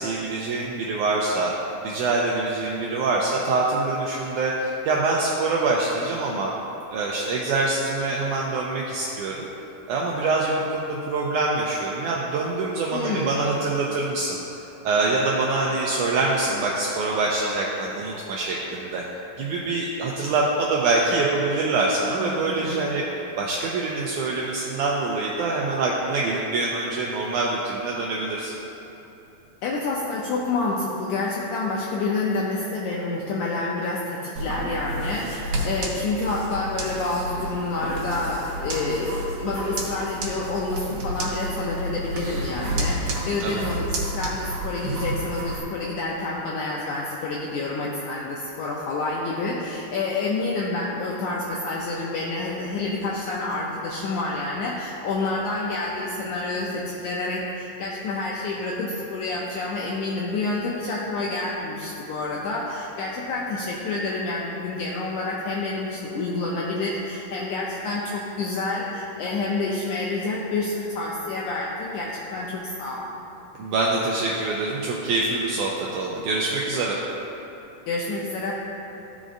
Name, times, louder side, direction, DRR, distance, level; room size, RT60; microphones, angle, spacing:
voice 1, 0.0-1.5 1.8-6.5 6.9-9.5 9.9-14.4 14.9-19.0 19.4-23.1 23.4-28.5 43.4-43.7 73.6-77.0, right 3 dB, 85° right, -3 dB, 1.8 m, -25 dB
voice 2, 12.9-13.4 22.2-22.8 29.6-73.1 77.9-78.5, left 3 dB, 85° left, -4 dB, 1.7 m, -28 dB
sound 1, 34.4-45.6, right 1 dB, 70° right, 2.3 m, -30 dB
14.5 x 5.1 x 2.5 m, 3.0 s
omnidirectional pair, 4.1 m